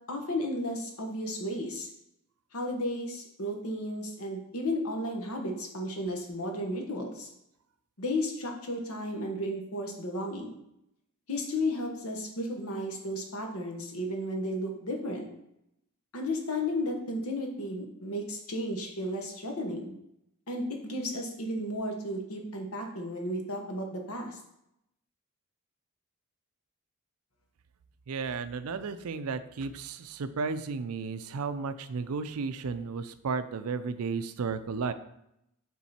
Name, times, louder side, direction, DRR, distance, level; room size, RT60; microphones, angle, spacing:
voice 1, 0.1-1.9 2.5-7.3 8.0-10.6 11.3-15.3 16.1-19.9 20.5-24.4, left 1 dB, 70° left, 2 dB, 1.2 m, -33 dB
voice 2, 28.1-34.9, right 5 dB, 75° right, 12 dB, 0.4 m, -33 dB
7.2 x 3.8 x 4.2 m, 0.80 s
head